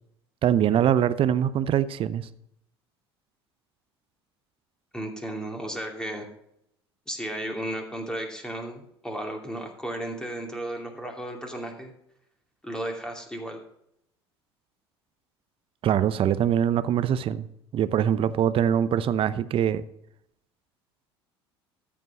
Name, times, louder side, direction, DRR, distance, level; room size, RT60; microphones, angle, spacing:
voice 1, 0.4-2.3 15.8-17.5 17.7-19.8, right 9 dB, 40° right, 14 dB, 0.7 m, -23 dB
voice 2, 4.9-6.3 7.1-11.9 12.6-13.6, right 1 dB, 5° left, 2 dB, 2.7 m, -34 dB
13.5 x 5.5 x 6.5 m, 0.75 s
figure-of-eight pair, 65°, 14 cm